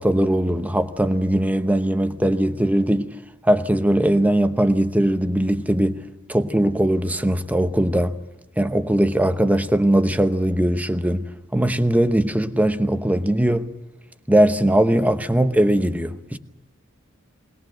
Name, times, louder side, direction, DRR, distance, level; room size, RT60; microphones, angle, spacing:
voice 1, 0.0-3.1 3.4-6.0 6.3-8.2 8.6-13.7 14.3-16.4, right 1 dB, 5° right, 0.9 m, -20 dB
21.5 x 20.0 x 7.8 m
head